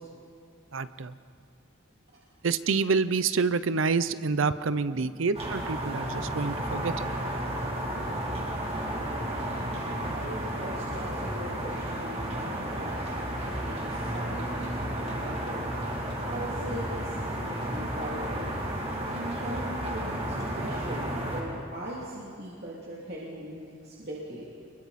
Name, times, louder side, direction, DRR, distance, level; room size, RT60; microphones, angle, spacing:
voice 1, 0.7-1.1 2.4-7.1, right 4 dB, 70° right, 14 dB, 0.6 m, -27 dB
sound 1, 5.3-21.4, right 1 dB, 30° right, 2.8 m, -32 dB
voice 2, 8.9-9.7 10.0-13.1 13.5-14.5 15.0-15.6 16.2-18.5 19.1-24.4, right 1 dB, 50° right, -6 dB, 2.8 m, -40 dB
29.0 x 22.5 x 4.2 m, 2.3 s
head